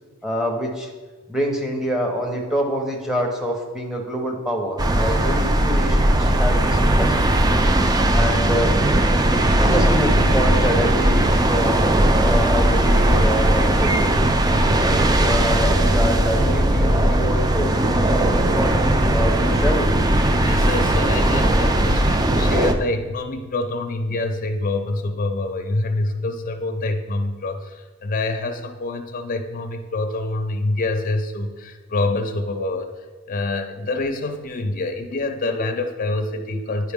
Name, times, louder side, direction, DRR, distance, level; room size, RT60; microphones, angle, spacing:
voice 1, 0.2-0.9 1.3-7.2 7.6-8.8 9.5-11.8 12.2-14.0 14.4-20.1, equal, 5° right, 0 dB, 0.9 m, -26 dB
sound 1, 4.8-22.7, right 1 dB, 20° right, 0.4 m, -18 dB
voice 2, 20.4-32.9 33.3-36.9, left 2 dB, 40° left, 4 dB, 0.5 m, -26 dB
9.3 x 4.6 x 3.6 m, 1.3 s
head